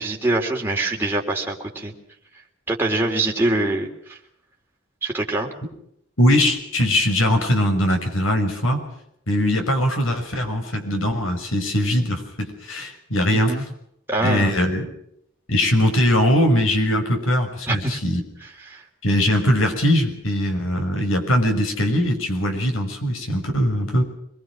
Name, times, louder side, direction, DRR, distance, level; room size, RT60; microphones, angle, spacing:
voice 1, 0.0-1.9 2.7-4.2 5.0-5.5 13.3-13.6 14.1-14.5 17.7-18.0 18.6-18.8, right 2 dB, 10° right, -1 dB, 3.4 m, -24 dB
voice 2, 6.2-8.8 9.3-13.6 14.2-14.9 15.5-18.2 19.0-24.0, left 1 dB, 90° left, 5 dB, 6.3 m, -21 dB
26.0 x 21.5 x 6.2 m, 0.73 s
head